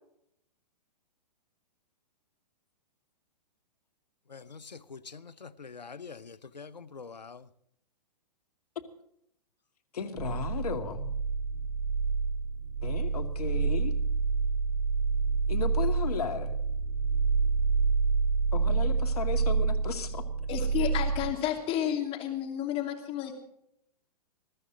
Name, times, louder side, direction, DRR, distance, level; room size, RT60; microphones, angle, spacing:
voice 1, 4.3-7.4, left 5 dB, 85° left, 0.9 m, -45 dB
voice 2, 9.9-11.1 12.8-14.0 15.5-16.6 18.5-20.2, left 5 dB, 65° left, 2.5 m, -35 dB
sound 1, 10.2-21.3, right 4 dB, 25° right, 3.8 m, -28 dB
voice 3, 20.5-23.3, left 10 dB, 25° left, 2.8 m, -31 dB
21.5 x 13.5 x 4.0 m
figure-of-eight pair, 115°, 21 cm